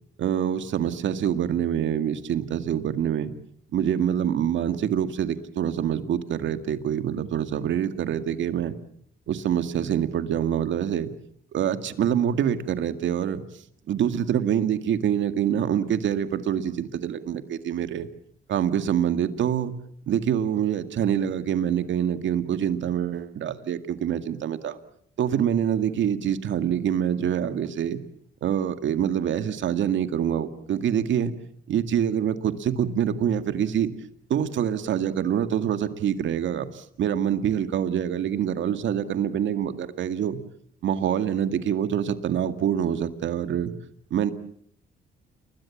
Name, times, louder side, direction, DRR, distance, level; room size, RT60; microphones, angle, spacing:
voice 1, 0.2-3.3 3.7-8.8 9.3-11.1 11.5-13.4 13.9-18.1 18.5-19.7 20.1-24.8 25.2-28.0 28.4-31.3 31.7-33.9 34.3-40.4 40.8-43.7 44.1-44.3, right 9 dB, 70° right, 10 dB, 2.0 m, -25 dB
29.5 x 21.0 x 7.3 m, 0.63 s
cardioid pair, 90°, 20 cm